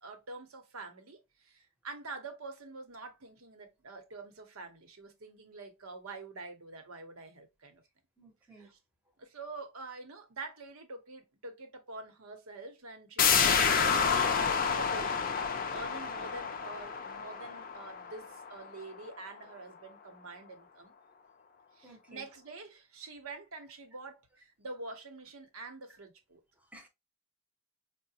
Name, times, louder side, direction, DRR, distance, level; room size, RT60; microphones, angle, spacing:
voice 1, 0.0-7.8 8.5-8.8 9.2-20.9 21.7-26.4, right 3 dB, 85° right, 0.9 m, -46 dB
voice 2, 8.2-8.7 21.8-22.3 26.6-26.9, right 2 dB, 5° right, 0.7 m, -54 dB
sound 1, 13.2-18.7 19.0-19.1, left 6 dB, 40° left, 0.4 m, -29 dB
4.8 x 2.1 x 2.7 m
head